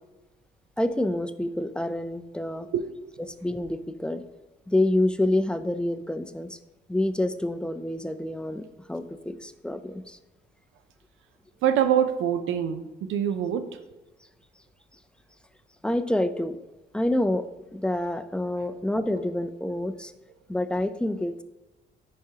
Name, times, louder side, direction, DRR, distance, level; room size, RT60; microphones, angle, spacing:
voice 1, 0.8-2.7 3.2-4.2 4.7-6.6 6.9-10.2 15.8-16.6 16.9-17.5 17.7-20.1 20.5-21.4, left 1 dB, 5° left, 10 dB, 0.4 m, -27 dB
voice 2, 11.6-13.6, right 9 dB, 80° right, 8 dB, 0.5 m, -24 dB
10.5 x 4.9 x 2.8 m, 1.1 s
cardioid pair, 90°, 20 cm